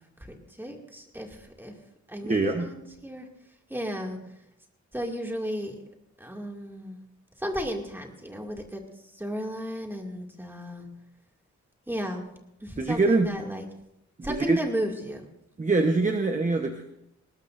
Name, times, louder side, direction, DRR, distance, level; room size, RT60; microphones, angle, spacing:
voice 1, 0.2-1.7 2.1-3.3 3.7-4.2 4.9-5.7 6.2-7.0 7.4-8.8 9.1-10.9 11.9-12.2 12.6-13.7 14.2-15.2, equal, 5° right, 1 dB, 2.3 m, -34 dB
voice 2, 2.2-2.7 12.8-13.3 14.3-14.6 15.6-16.8, right 3 dB, 25° right, 4 dB, 1.0 m, -24 dB
20.0 x 19.5 x 2.6 m, 0.81 s
wide cardioid pair, 130°, 29 cm